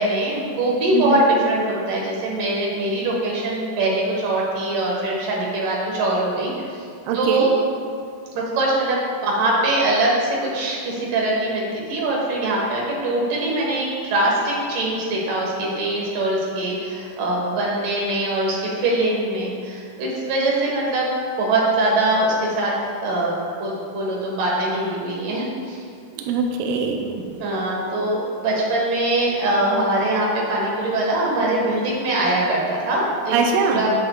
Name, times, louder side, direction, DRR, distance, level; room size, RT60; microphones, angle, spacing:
voice 1, 0.0-6.5 7.1-7.5 8.3-21.1 21.4-25.8 27.4-33.4 33.7-33.9, right 1 dB, 65° right, -4 dB, 2.9 m, -22 dB
voice 2, 7.1-7.5 26.1-27.2 33.3-33.9, right 5 dB, 85° right, 2 dB, 1.8 m, -22 dB
9.2 x 8.5 x 2.3 m, 2.3 s
omnidirectional pair, 4.2 m